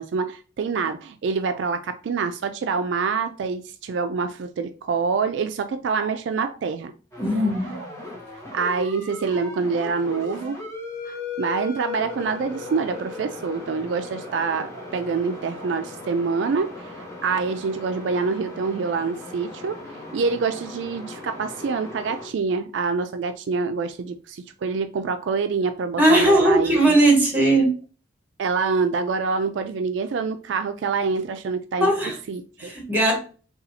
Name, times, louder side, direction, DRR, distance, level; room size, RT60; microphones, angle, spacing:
voice 1, 0.0-6.9 7.3-7.9 8.3-10.6 11.1-19.8 20.1-26.8 28.4-31.9 32.3-32.7, right 5 dB, 70° right, 0.3 m, -26 dB
sound 1, 7.1-22.3, left 3 dB, 15° left, 1.3 m, -37 dB
voice 2, 7.2-7.8 26.0-27.7 31.8-32.2 32.6-33.2, right 1 dB, 10° right, 1.5 m, -18 dB
4.0 x 2.3 x 4.1 m
head